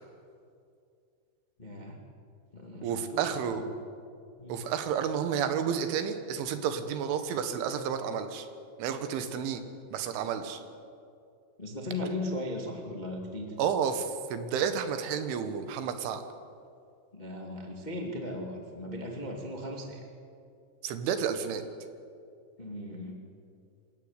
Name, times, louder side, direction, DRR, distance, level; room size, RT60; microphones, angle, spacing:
voice 1, 1.6-2.0 2.5-3.6 4.4-4.6 11.6-13.5 17.1-20.0 22.6-23.2, left 1 dB, 55° left, 1 dB, 0.4 m, -37 dB
voice 2, 2.8-3.7 4.5-8.5 8.8-9.6 9.9-10.6 13.6-16.2 20.8-21.6, right 7 dB, 80° right, 9 dB, 3.8 m, -31 dB
26.5 x 14.0 x 9.7 m, 2.4 s
omnidirectional pair, 5.5 m